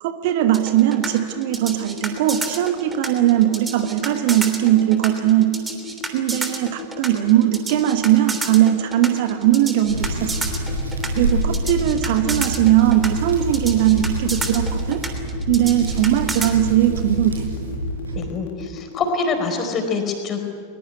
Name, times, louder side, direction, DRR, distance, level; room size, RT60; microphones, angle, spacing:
voice 1, 0.0-5.5 6.1-10.5 11.1-15.0 15.5-17.4, right 13 dB, 50° right, 9 dB, 1.4 m, -19 dB
sound 1, 0.5-16.5, right 3 dB, 15° right, 3.2 m, -30 dB
sound 2, 1.0-19.5, left 8 dB, 55° left, 1.9 m, -36 dB
Hands, 9.8-18.2, equal, 75° right, 6.2 m, -27 dB
voice 2, 18.1-20.4, left 4 dB, 30° left, 4 dB, 4.5 m, -25 dB
22.0 x 21.5 x 9.5 m, 2.3 s
figure-of-eight pair, 90°, 0 cm